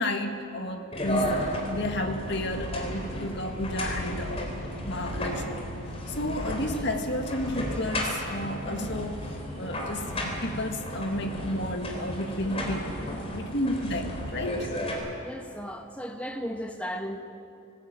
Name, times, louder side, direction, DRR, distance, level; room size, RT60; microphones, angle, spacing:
voice 1, 0.0-5.7 6.1-9.2 9.5-12.9 13.2-14.7, left 1 dB, 55° left, 4 dB, 1.9 m, -32 dB
sound 1, 0.9-14.9, equal, 30° left, 3.7 m, -33 dB
voice 2, 15.2-17.2, equal, 5° left, 4 dB, 1.3 m, -35 dB
20.0 x 18.5 x 8.8 m, 2.7 s
head